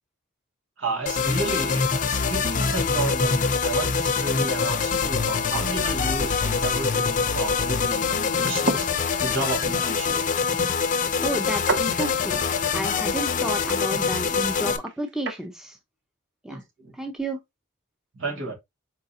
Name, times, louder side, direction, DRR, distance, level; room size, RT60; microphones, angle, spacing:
voice 1, 0.8-8.9 9.2-10.4 16.5-16.9 18.1-18.5, right 3 dB, 75° right, 1.9 m, -32 dB
sound 1, 1.1-14.8, left 5 dB, 40° left, 0.5 m, -24 dB
sound 2, 8.3-15.5, right 3 dB, 60° right, 0.6 m, -35 dB
voice 2, 11.2-12.4 12.7-15.8 16.4-16.6 16.9-17.4, right 1 dB, ahead, 0.6 m, -31 dB
4.9 x 3.8 x 2.7 m
head